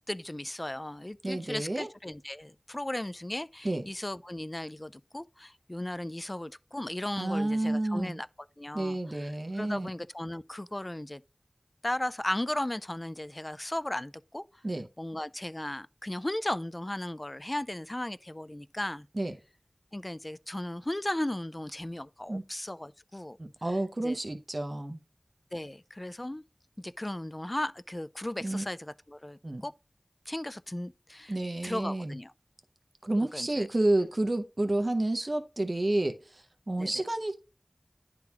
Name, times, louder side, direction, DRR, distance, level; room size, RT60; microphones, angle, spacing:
voice 1, 0.1-8.3 8.6-11.2 11.8-14.6 15.0-19.1 19.9-23.4 24.0-24.2 25.5-26.4 26.8-29.7 30.3-31.4 31.6-32.3 33.2-33.7 36.8-36.9, left 1 dB, 30° left, 0.3 m, -36 dB
voice 2, 1.2-1.9 3.6-3.8 7.2-8.2 8.7-9.9 14.6-14.9 19.2-19.3 22.3-22.4 23.4-25.0 28.4-28.6 29.4-29.7 31.3-32.1 33.0-37.3, right 1 dB, 50° right, 0.7 m, -30 dB
10.5 x 3.8 x 2.9 m
wide cardioid pair, 50°, 0 cm